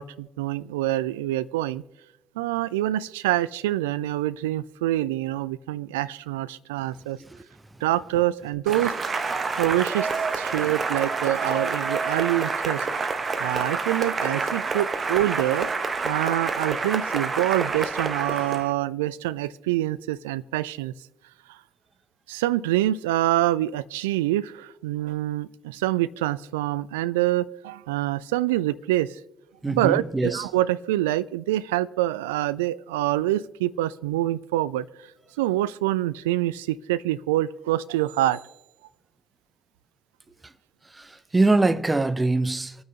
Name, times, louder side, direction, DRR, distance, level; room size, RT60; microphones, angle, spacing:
voice 1, 0.0-1.8 2.4-7.2 7.8-9.0 9.6-10.1 10.3-12.9 13.4-15.7 16.0-20.9 21.5-21.6 22.3-29.2 29.7-34.9 35.4-38.4, right 15 dB, 70° right, 0.3 m, -26 dB
Cheering / Applause, 8.7-18.7, right 4 dB, 35° right, 1.1 m, -28 dB
voice 2, 29.6-30.5 40.9-42.8, right 2 dB, 15° right, 0.7 m, -23 dB
26.0 x 9.3 x 2.8 m
figure-of-eight pair, 45°, 0 cm